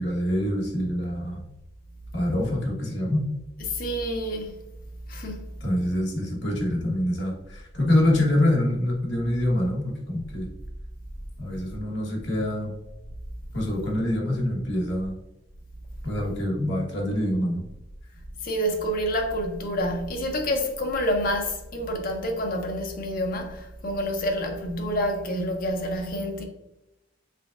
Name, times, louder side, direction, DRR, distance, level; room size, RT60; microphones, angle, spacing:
voice 1, 0.0-1.4 2.1-3.3 5.6-10.5 11.4-12.7 13.5-15.1 16.0-17.6, left 1 dB, 60° left, 1.2 m, -25 dB
voice 2, 3.7-4.6 5.1-5.4 18.4-26.4, equal, 45° left, 0.7 m, -28 dB
5.0 x 3.4 x 2.4 m
head